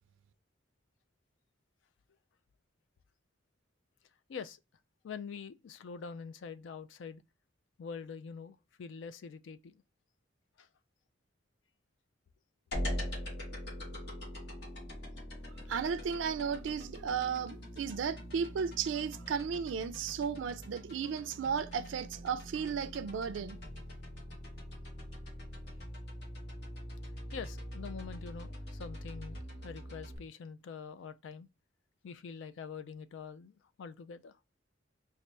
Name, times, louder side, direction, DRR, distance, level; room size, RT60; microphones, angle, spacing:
voice 1, 4.3-4.6 5.0-7.2 7.8-9.8 10.6-10.7 27.3-31.5 32.0-34.4, left 6 dB, 75° left, 0.3 m, -45 dB
sound 1, 12.7-30.2, equal, 60° left, 1.3 m, -43 dB
voice 2, 15.7-23.6, right 6 dB, 80° right, 0.3 m, -34 dB
4.1 x 2.4 x 3.2 m
head